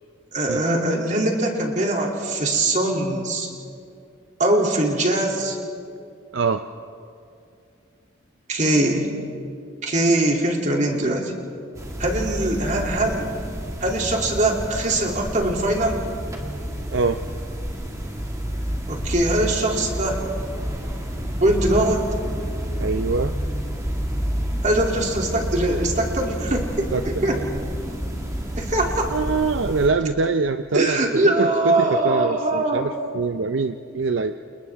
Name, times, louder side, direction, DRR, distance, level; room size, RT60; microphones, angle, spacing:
voice 1, 0.3-3.5 4.4-5.6 8.5-9.1 9.8-11.3 12.0-13.3 13.8-16.0 18.9-20.3 21.3-22.1 24.6-27.4 28.6-29.1 30.7-32.9, right 1 dB, 40° right, 0 dB, 2.8 m, -22 dB
sound 1, 11.7-29.9, equal, 15° right, 2.0 m, -29 dB
voice 2, 22.8-23.3 26.9-27.5 29.1-34.3, right 4 dB, 70° right, 8 dB, 0.6 m, -24 dB
30.0 x 28.5 x 3.5 m, 2.4 s
head